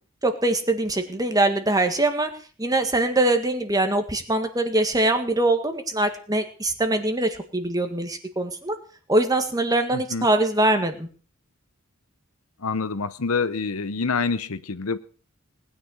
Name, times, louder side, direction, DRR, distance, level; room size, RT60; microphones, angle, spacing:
voice 1, 0.2-2.3 2.6-8.8 9.1-11.1, right 2 dB, 15° right, 7 dB, 1.9 m, -23 dB
voice 2, 9.9-10.3 12.6-15.0, left 4 dB, 85° left, 14 dB, 0.9 m, -26 dB
19.5 x 9.9 x 6.4 m, 0.41 s
head